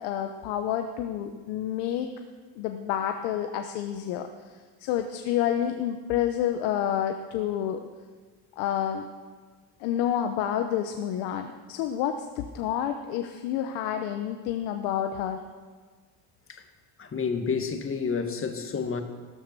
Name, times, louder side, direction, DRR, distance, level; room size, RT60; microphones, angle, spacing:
voice 1, 0.0-2.1 2.6-4.3 4.8-7.8 8.6-9.1 9.8-15.4, left 10 dB, 90° left, 6 dB, 1.2 m, -29 dB
voice 2, 17.0-19.0, left 5 dB, 25° left, 6 dB, 1.8 m, -29 dB
15.5 x 13.5 x 6.9 m, 1.5 s
cardioid pair, 105°, 47 cm